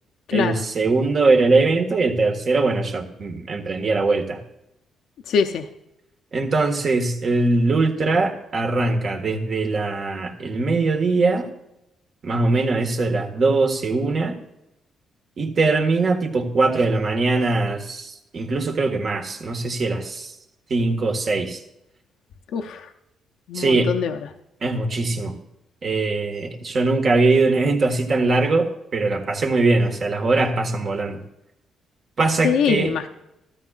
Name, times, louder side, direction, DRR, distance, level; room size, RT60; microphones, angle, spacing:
voice 1, 0.3-4.4 6.3-11.5 12.2-14.4 15.4-20.3 20.7-21.6 23.5-23.9 24.6-25.3 25.8-31.2 32.2-32.9, right 3 dB, 50° right, 4 dB, 1.7 m, -21 dB
voice 2, 5.3-5.6 22.5-22.9 23.5-24.2 32.4-33.1, left 7 dB, 75° left, 4 dB, 0.7 m, -22 dB
15.5 x 13.0 x 2.5 m, 0.87 s
cardioid pair, 90°, 0 cm